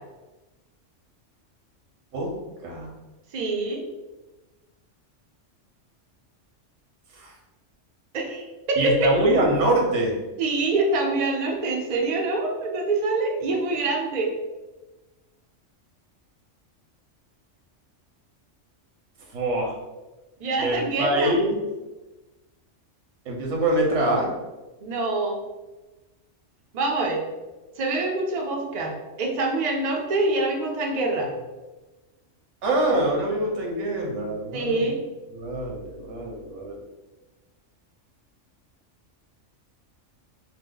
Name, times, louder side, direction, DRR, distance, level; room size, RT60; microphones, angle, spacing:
voice 1, 3.3-3.8 8.1-9.2 10.4-14.4 20.4-21.3 24.8-25.4 26.7-27.2 27.8-31.3 34.5-35.0, right 2 dB, 50° right, 0 dB, 0.5 m, -25 dB
voice 2, 8.8-10.1 19.3-19.7 20.6-21.6 23.3-24.3 32.6-34.9 35.3-36.8, right 1 dB, 70° right, -1 dB, 1.1 m, -24 dB
2.8 x 2.1 x 3.7 m, 1.1 s
omnidirectional pair, 1.3 m